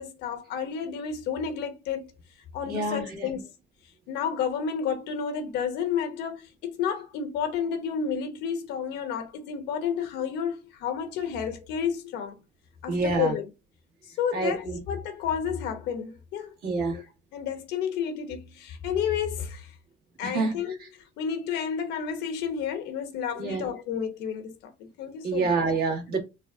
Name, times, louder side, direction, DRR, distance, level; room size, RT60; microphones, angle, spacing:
voice 1, 0.0-2.1 2.5-3.4 4.1-12.4 12.8-13.5 14.2-16.5 16.9-17.0 17.3-19.7 20.2-25.5, left 7 dB, 90° left, 1.0 m, -31 dB
voice 2, 2.7-3.4 12.9-13.3 14.3-14.8 16.6-17.0 20.2-20.9 23.3-23.7 25.2-26.2, right 3 dB, 65° right, 1.7 m, -28 dB
4.0 x 2.5 x 3.4 m
cardioid pair, 110°, 17 cm